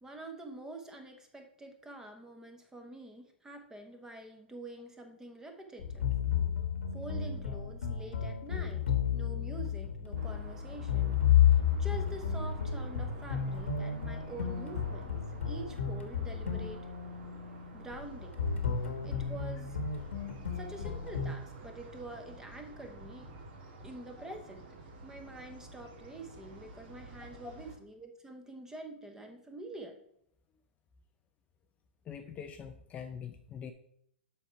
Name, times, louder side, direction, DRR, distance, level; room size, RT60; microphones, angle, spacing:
voice 1, 0.0-6.1 6.9-8.9 9.1-11.2 11.4-16.9 17.7-18.3 19.0-19.8 20.5-23.3 23.8-24.6 25.0-30.0, right 2 dB, 10° right, 5 dB, 1.1 m, -46 dB
sound 1, 5.8-21.3, left 8 dB, 90° left, 1.3 m, -32 dB
sound 2, 10.2-27.8, right 2 dB, 55° right, 2.0 m, -50 dB
voice 2, 32.1-33.7, left 7 dB, 20° left, 6 dB, 0.5 m, -44 dB
7.0 x 5.9 x 4.6 m, 0.71 s
hypercardioid pair, 135°, 6 cm